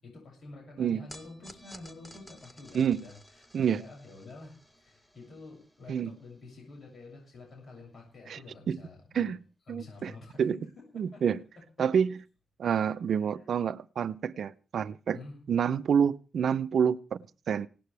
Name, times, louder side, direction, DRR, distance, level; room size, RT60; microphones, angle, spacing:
voice 1, 0.0-3.1 3.6-9.3 9.7-11.2 11.8-11.9 15.1-15.4, left 3 dB, 55° left, 7.2 m, -48 dB
sound 1, 1.1-7.5, equal, 10° left, 1.9 m, -55 dB
voice 2, 3.5-3.8 5.9-6.1 8.3-8.4 8.7-8.8 9.1-9.4 9.7-10.1 10.4-10.6 10.9-11.4 11.8-12.2 12.6-15.2 15.5-17.7, right 7 dB, 65° right, 0.7 m, -28 dB
20.0 x 17.5 x 3.4 m
wide cardioid pair, 135°, 0 cm